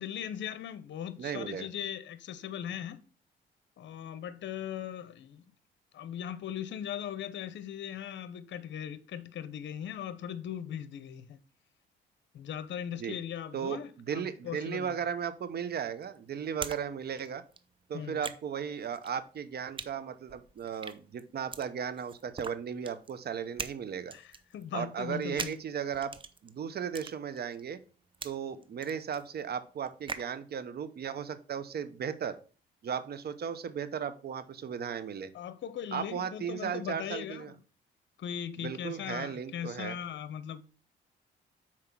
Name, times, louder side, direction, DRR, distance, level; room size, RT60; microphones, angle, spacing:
voice 1, 0.0-3.0 3.8-5.4 5.9-11.4 12.3-15.0 17.9-18.2 24.1-25.6 35.3-37.5 38.2-40.6, left 9 dB, 65° left, 0.8 m, -39 dB
voice 2, 1.2-1.7 13.0-13.2 13.5-17.4 17.9-24.1 24.7-26.1 26.4-27.8 28.2-32.4 32.8-35.3 35.9-37.5 38.6-40.0, right 7 dB, 55° right, 0.9 m, -36 dB
sound 1, 15.4-16.8 17.1-30.3, right 4 dB, 25° right, 0.6 m, -44 dB
5.9 x 4.6 x 6.1 m
cardioid pair, 90°, 20 cm